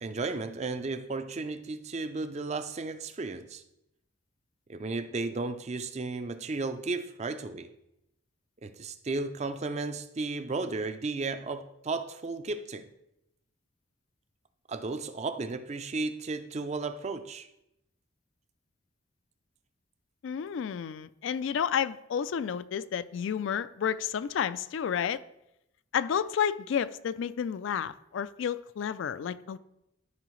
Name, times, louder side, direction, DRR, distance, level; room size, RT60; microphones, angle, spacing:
voice 1, 0.0-3.6 4.7-7.7 8.6-12.9 14.7-17.5, right 3 dB, 35° right, 0.4 m, -34 dB
voice 2, 20.2-25.2 25.9-29.6, left 8 dB, 70° left, 0.3 m, -31 dB
12.5 x 4.8 x 3.1 m
head